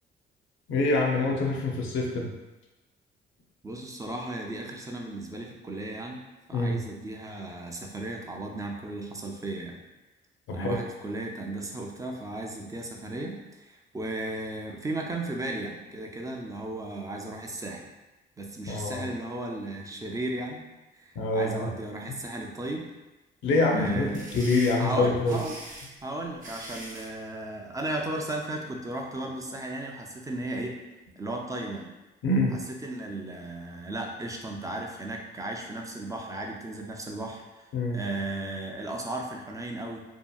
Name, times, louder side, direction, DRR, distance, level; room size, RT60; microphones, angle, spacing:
voice 1, 0.7-2.3 6.5-6.8 10.5-10.7 18.7-19.1 21.2-21.7 23.4-24.1 24.3-25.4 32.2-32.6 37.7-38.0, left 2 dB, 80° left, 1 dB, 0.6 m, -25 dB
voice 2, 3.6-6.2 6.5-9.8 10.5-17.9 18.4-20.6 20.9-22.9 23.7-24.3 24.8-25.6 26.0-30.8 31.2-31.9 32.5-40.0, right 2 dB, 15° right, 1 dB, 0.4 m, -35 dB
sound 1, 23.8-27.1, right 1 dB, 40° right, 0.9 m, -43 dB
2.7 x 2.4 x 2.3 m, 1.1 s
cardioid pair, 90°, 20 cm